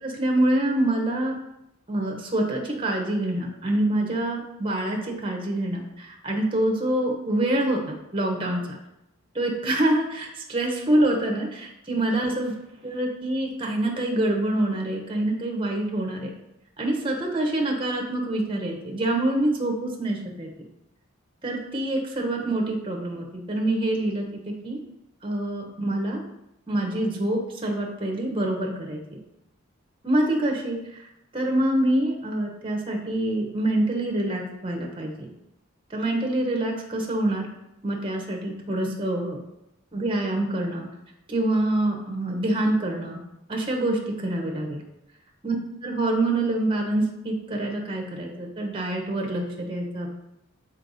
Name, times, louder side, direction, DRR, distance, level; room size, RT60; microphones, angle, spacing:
voice 1, 0.0-1.3 1.9-7.8 8.1-8.8 9.3-12.5 12.8-16.3 16.8-20.5 21.4-24.8 25.2-26.2 26.7-29.2 30.0-31.1 31.3-35.3 35.9-37.5 37.8-39.4 39.9-40.9 41.3-43.2 43.5-44.8 45.4-45.5 45.8-50.1, right 1 dB, 25° right, 1 dB, 0.9 m, -26 dB
6.4 x 4.4 x 4.0 m, 0.87 s
head